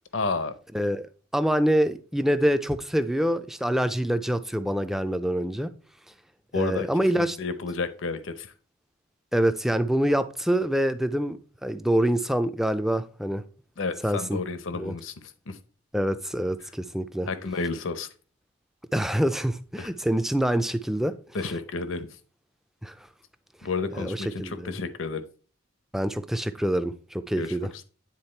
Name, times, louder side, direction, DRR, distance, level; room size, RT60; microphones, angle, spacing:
voice 1, 0.1-0.5 6.5-6.9 7.1-8.5 13.8-15.6 17.3-18.1 19.8-19.9 21.3-22.1 23.6-25.2 27.4-27.6, left 4 dB, 65° left, 0.7 m, -31 dB
voice 2, 0.7-1.1 1.3-5.7 6.6-7.4 9.3-13.4 14.0-14.4 14.7-15.0 15.9-17.3 18.9-21.2 22.8-22.9 23.9-24.8 25.9-27.7, right 1 dB, ahead, 0.4 m, -25 dB
9.9 x 3.5 x 4.4 m
head